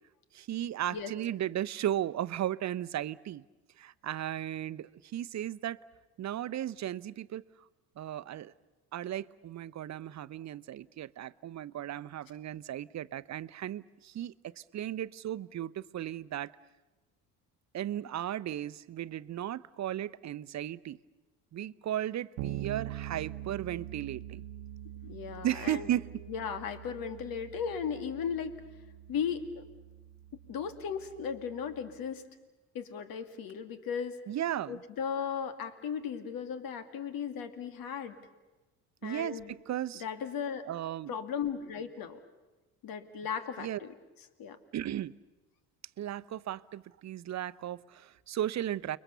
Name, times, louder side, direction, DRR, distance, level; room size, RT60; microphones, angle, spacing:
voice 1, 0.3-3.4 3.8-5.8 6.2-7.4 8.0-8.5 8.9-16.5 17.7-21.0 21.5-24.4 25.4-26.1 34.3-34.8 39.0-39.4 39.7-40.0 40.7-41.1 43.6-43.8 44.7-45.1 46.0-49.0, right 12 dB, 45° right, 17 dB, 0.8 m, -35 dB
Bass guitar, 22.4-32.0, right 13 dB, 85° right, 0.9 m, -44 dB
voice 2, 25.0-25.9 26.3-28.6 29.1-29.6 30.5-32.2 32.7-34.2 34.7-38.2 39.0-39.5 39.9-40.7 41.1-42.2 42.8-43.9 44.4-44.6, left 7 dB, 65° left, 10 dB, 2.2 m, -36 dB
29.5 x 22.5 x 6.9 m, 1.1 s
supercardioid pair, 75°, 38 cm